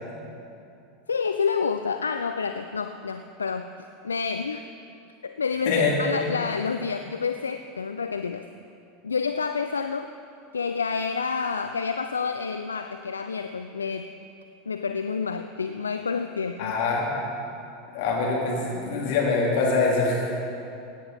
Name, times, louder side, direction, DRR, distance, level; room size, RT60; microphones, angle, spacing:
voice 1, 1.1-4.7 5.2-8.5 9.0-10.1 10.5-14.1 14.7-16.7, left 5 dB, 80° left, 8 dB, 0.3 m, -29 dB
voice 2, 5.7-6.3 16.6-17.1 17.9-20.4, left 3 dB, 55° left, -3 dB, 2.9 m, -24 dB
16.5 x 9.2 x 4.0 m, 2.7 s
figure-of-eight pair, 80°, 0 cm